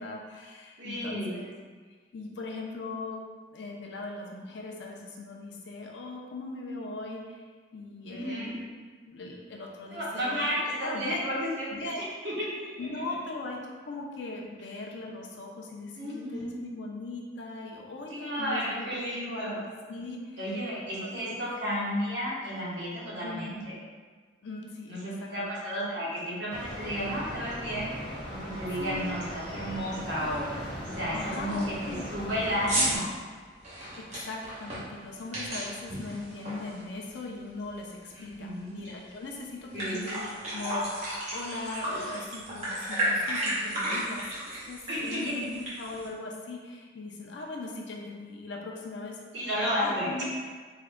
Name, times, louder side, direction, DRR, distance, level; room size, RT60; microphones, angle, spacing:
voice 1, 0.0-1.5 2.1-3.2 3.5-7.4 7.7-8.6 9.1-10.5 10.9-11.2 11.7-12.1 12.8-20.4 20.8-21.4 23.2-23.6 24.4-25.3 28.8-29.1 31.1-32.0 34.0-40.2 40.5-49.2 49.8-50.2, left 2 dB, 70° left, -1 dB, 0.5 m, -39 dB
voice 2, 0.8-1.5 8.1-8.5 9.9-11.9 12.2-13.0 15.9-16.6 18.1-19.6 20.4-23.7 24.9-27.9 28.3-30.5 30.9-33.1 38.1-38.8 39.7-40.1 41.9-42.1 44.9-45.3 49.3-50.2, equal, 65° right, -7 dB, 1.1 m, -32 dB
sound 1, 26.5-33.0, equal, 25° left, 1.2 m, -39 dB
sound 2, 27.9-28.0 28.5-28.8 29.1-29.2 29.6-29.9 30.3-30.4 30.9-31.0 31.3-37.3 37.6-38.9 39.3-39.4 39.6-46.1, right 1 dB, 35° right, 1.0 m, -34 dB
3.6 x 2.2 x 3.5 m, 1.5 s
head